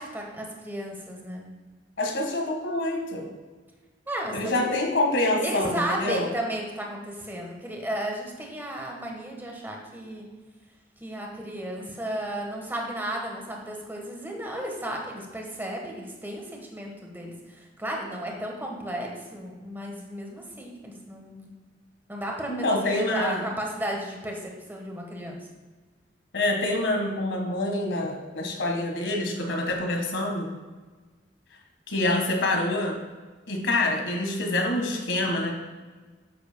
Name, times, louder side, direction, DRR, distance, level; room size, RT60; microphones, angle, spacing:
voice 1, 0.0-1.5 4.1-4.8 5.4-10.3 11.0-21.5 22.1-25.4, right 1 dB, 10° right, 0 dB, 1.3 m, -34 dB
voice 2, 2.0-3.3 4.3-6.3 22.5-23.4 26.3-30.5 31.9-33.0 33.5-35.6, left 2 dB, 80° left, 2 dB, 1.6 m, -26 dB
10.0 x 8.0 x 2.2 m, 1.3 s
head